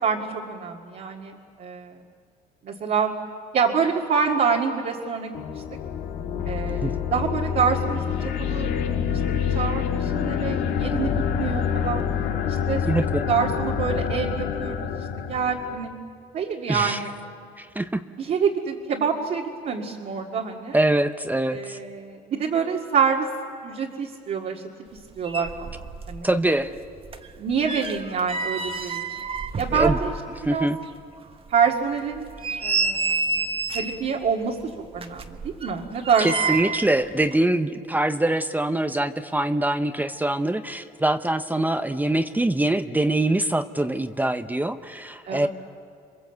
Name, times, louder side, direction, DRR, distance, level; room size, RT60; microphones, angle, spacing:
voice 1, 0.0-2.0 2.6-3.1 3.5-5.4 6.5-8.0 8.4-8.7 9.5-12.0 12.7-12.8 13.3-15.0 15.3-15.9 16.3-17.1 18.2-20.8 21.5-23.3 23.6-24.6 25.2-26.3 27.4-29.0 29.6-30.1 30.5-30.7 31.5-32.3 32.6-33.3 33.7-34.6 34.9-36.3 45.3-45.5, right 6 dB, 55° right, -1 dB, 2.1 m, -26 dB
sound 1, 5.3-15.9, left 8 dB, 80° left, 1.8 m, -27 dB
voice 2, 12.9-13.3 16.7-17.0 17.6-18.0 20.7-21.8 26.2-26.7 29.7-30.0 30.4-30.8 36.2-45.5, right 1 dB, 10° right, 10 dB, 0.7 m, -24 dB
sound 2, 25.0-25.1 25.2-26.2 26.5-30.5 30.8-30.9 31.5-31.6 32.1-34.1 34.9-36.9 37.2-37.4, right 4 dB, 35° right, 1.3 m, -29 dB
27.5 x 22.0 x 8.1 m, 2.5 s
cardioid pair, 110°, 17 cm